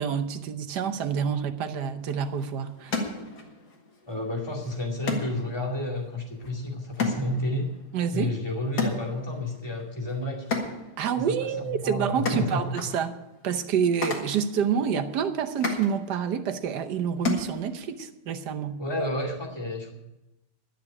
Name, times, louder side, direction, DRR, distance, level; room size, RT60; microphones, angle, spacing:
voice 1, 0.0-3.0 7.9-8.3 11.0-13.2 13.4-18.8, right 7 dB, 75° right, 7 dB, 1.5 m, -28 dB
sound 1, 2.0-18.1, left 3 dB, 65° left, 2.4 m, -36 dB
voice 2, 4.1-7.7 8.1-10.4 11.2-12.6 18.8-19.9, left 1 dB, 15° left, -1 dB, 2.4 m, -31 dB
12.0 x 6.8 x 9.8 m, 0.94 s
omnidirectional pair, 1.8 m